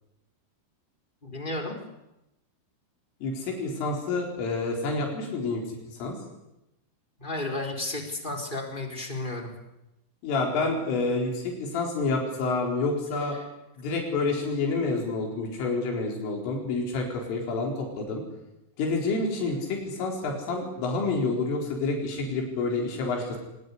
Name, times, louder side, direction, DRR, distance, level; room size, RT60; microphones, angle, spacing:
voice 1, 1.2-1.8 7.2-9.5, left 2 dB, 10° left, 2 dB, 3.4 m, -33 dB
voice 2, 3.2-5.6 5.9-6.2 10.2-13.4 13.8-18.2 18.8-23.4, left 3 dB, 85° left, 1 dB, 6.9 m, -28 dB
24.0 x 19.5 x 10.0 m, 0.91 s
omnidirectional pair, 5.6 m